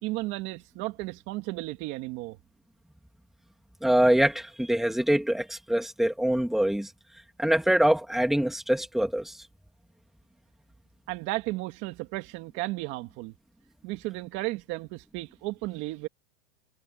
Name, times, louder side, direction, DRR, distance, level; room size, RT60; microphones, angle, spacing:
voice 1, 0.0-2.4 11.1-13.3 13.8-16.1, right 20 dB, 40° right, 2.2 m, -34 dB
voice 2, 3.8-6.9 7.4-9.3, right 1 dB, ahead, 2.8 m, -24 dB
supercardioid pair, 160°, 31 cm